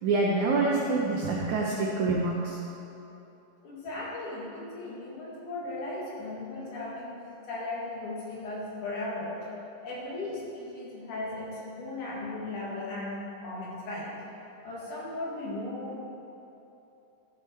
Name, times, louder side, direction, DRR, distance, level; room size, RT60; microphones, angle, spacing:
voice 1, 0.0-2.6, right 3 dB, 70° right, -2 dB, 1.9 m, -26 dB
voice 2, 3.6-7.2 7.5-9.4 9.8-14.1 14.6-16.0, left 2 dB, 65° left, -6 dB, 3.5 m, -37 dB
13.5 x 6.8 x 4.5 m, 2.9 s
omnidirectional pair, 3.9 m